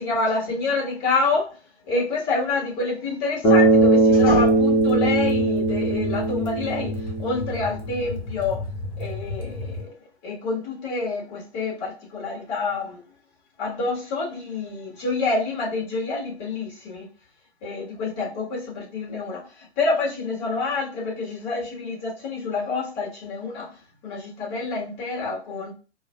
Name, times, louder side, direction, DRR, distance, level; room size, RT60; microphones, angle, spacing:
voice 1, 0.0-1.5 1.9-6.9 7.2-8.6 9.0-9.9 10.2-13.0 13.6-17.0 17.6-19.4 19.8-23.7 24.0-25.7, left 3 dB, 35° left, 1.5 m, -27 dB
Bass guitar, 3.4-7.7, right 2 dB, 15° left, 0.4 m, -19 dB
sound 1, 3.5-9.9, left 2 dB, 65° left, 1.3 m, -33 dB
4.6 x 2.0 x 2.2 m
figure-of-eight pair, 115°, 35 cm